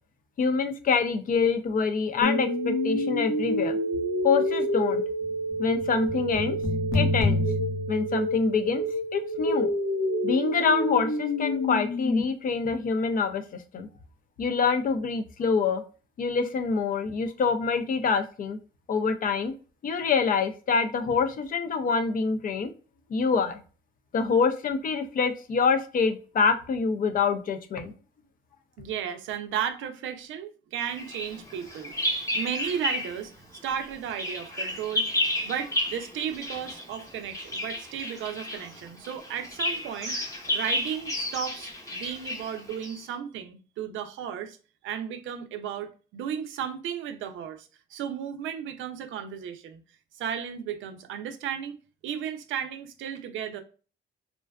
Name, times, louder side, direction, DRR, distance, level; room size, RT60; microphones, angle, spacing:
voice 1, 0.4-3.8 4.2-5.0 5.6-6.6 6.9-7.4 7.9-8.8 9.1-9.7 10.2-13.9 14.4-15.8 16.2-18.6 18.9-19.5 19.8-22.7 23.1-23.6 24.1-27.9, left 5 dB, 45° left, 0.4 m, -26 dB
sound 1, 2.2-12.2, left 1 dB, 85° left, 0.7 m, -27 dB
voice 2, 28.8-33.3 33.6-35.1 35.4-40.2 40.5-44.6 44.8-49.8 50.1-51.8 52.0-53.6, right 8 dB, 80° right, 0.4 m, -34 dB
Bird vocalization bird call bird song, 31.0-33.2 33.5-43.0, left 1 dB, 15° left, 0.8 m, -32 dB
2.4 x 2.3 x 2.2 m
cardioid pair, 90°, 20 cm